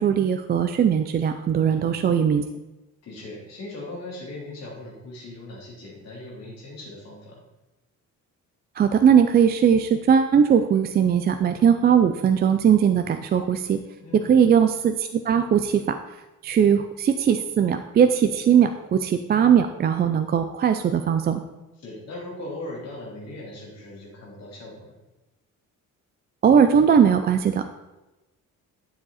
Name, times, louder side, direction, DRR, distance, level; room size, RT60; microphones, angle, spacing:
voice 1, 0.0-2.4 8.8-13.8 14.3-15.8 16.4-21.4 26.4-27.7, right 8 dB, 30° right, 8 dB, 0.4 m, -19 dB
voice 2, 1.6-1.9 3.0-7.4 14.0-14.3 21.8-24.9, left 2 dB, 50° left, -4 dB, 3.5 m, -39 dB
11.5 x 7.2 x 4.2 m, 1.1 s
cardioid pair, 165°, 33 cm